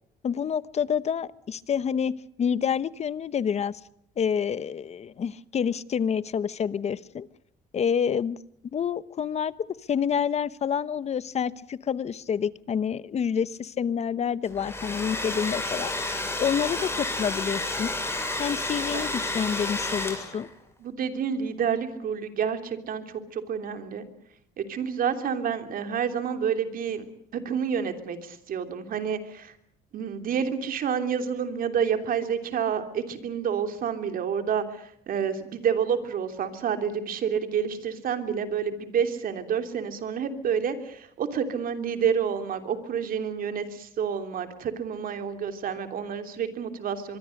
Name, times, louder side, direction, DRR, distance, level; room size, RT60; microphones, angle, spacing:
voice 1, 0.2-3.8 4.2-7.3 7.7-8.4 8.7-9.5 9.9-17.9 18.4-20.5, left 7 dB, 40° left, 17 dB, 1.0 m, -28 dB
Domestic sounds home sounds, 14.4-20.5, left 2 dB, 15° left, 6.9 m, -31 dB
voice 2, 20.8-24.1 24.6-27.0 27.3-29.5 29.9-47.2, right 7 dB, 55° right, 7 dB, 3.2 m, -29 dB
24.0 x 23.5 x 6.6 m, 0.74 s
cardioid pair, 110°, 17 cm